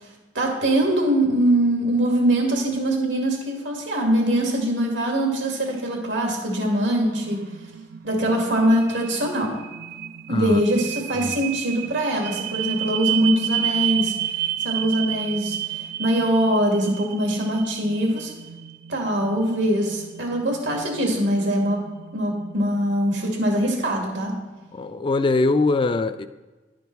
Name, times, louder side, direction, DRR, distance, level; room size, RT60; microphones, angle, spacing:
voice 1, 0.3-7.5 8.0-9.6 10.3-14.1 14.6-18.3 18.9-21.8 22.1-24.4, right 1 dB, 85° right, 2.1 m, -22 dB
sound 1, 6.2-24.3, right 12 dB, 55° right, 0.4 m, -32 dB
voice 2, 10.3-10.6 11.2-11.4 24.7-26.3, left 3 dB, 30° left, 0.3 m, -22 dB
11.0 x 5.1 x 4.6 m
head